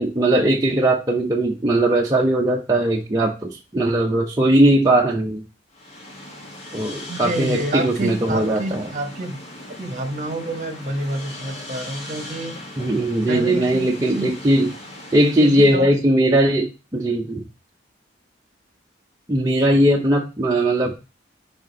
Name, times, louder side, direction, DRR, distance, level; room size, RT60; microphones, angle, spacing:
voice 1, 0.0-5.4 6.7-8.9 12.8-14.7 15.1-17.4 19.3-20.9, right 1 dB, 20° right, -2 dB, 0.7 m, -19 dB
sound 1, 5.7-15.8, left 1 dB, 35° left, 1.7 m, -39 dB
voice 2, 7.1-9.4 9.7-12.6 13.3-14.3 15.4-15.9, right 1 dB, 40° right, 5 dB, 1.2 m, -28 dB
5.1 x 4.9 x 3.8 m, 0.30 s
head